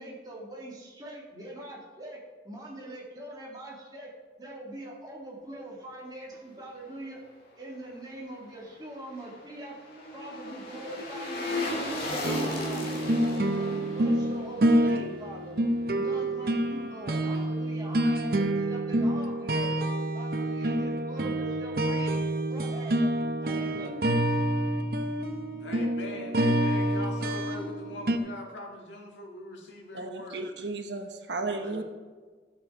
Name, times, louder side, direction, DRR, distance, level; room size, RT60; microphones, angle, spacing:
voice 1, 0.0-4.1 4.4-7.2 7.6-9.8 10.1-13.0 13.6-15.6 15.9-19.8 20.1-22.2 22.5-24.3, right 1 dB, 20° right, -3 dB, 2.1 m, -43 dB
sound 1, 8.7-15.9 16.3-16.4, left 1 dB, 50° left, 2.2 m, -36 dB
sound 2, 12.2-28.2, right 1 dB, 55° right, 0.7 m, -27 dB
voice 2, 25.6-30.4 31.4-31.8, left 1 dB, 85° left, 1 dB, 1.9 m, -42 dB
voice 3, 29.9-31.8, right 3 dB, 80° right, 6 dB, 1.0 m, -34 dB
13.0 x 7.0 x 4.8 m, 1.5 s
head